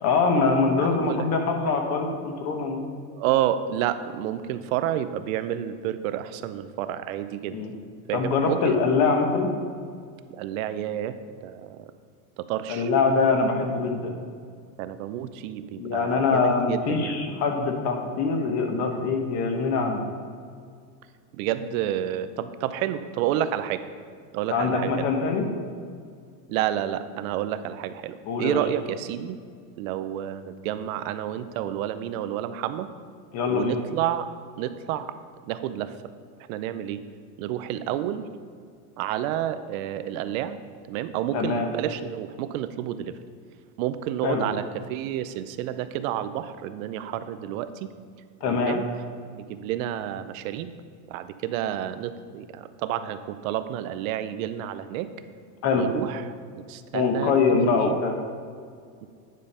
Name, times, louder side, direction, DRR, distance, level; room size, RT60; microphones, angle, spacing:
voice 1, 0.0-2.8 7.5-7.7 8.1-9.5 12.7-14.1 15.8-20.0 24.5-25.5 28.3-28.6 33.3-33.8 41.3-41.7 44.2-44.4 48.4-48.8 55.6-55.9 56.9-58.1, left 4 dB, 35° left, 4 dB, 1.0 m, -23 dB
voice 2, 0.8-1.2 3.1-7.6 8.1-8.8 10.3-11.2 11.4-11.8 12.4-12.9 14.8-17.2 21.3-23.8 24.3-25.1 26.5-29.4 29.8-32.9 33.5-34.3 34.6-35.1 35.4-35.9 36.5-37.0 37.4-38.3 39.0-40.6 40.9-43.2 43.8-44.6 44.9-47.9 48.4-48.8 49.3-50.7 51.1-55.1 55.7-56.3 56.7-57.3 57.6-58.0, right 11 dB, 65° right, 11 dB, 0.6 m, -30 dB
9.5 x 5.1 x 5.5 m, 2.1 s
cardioid pair, 170°, 44 cm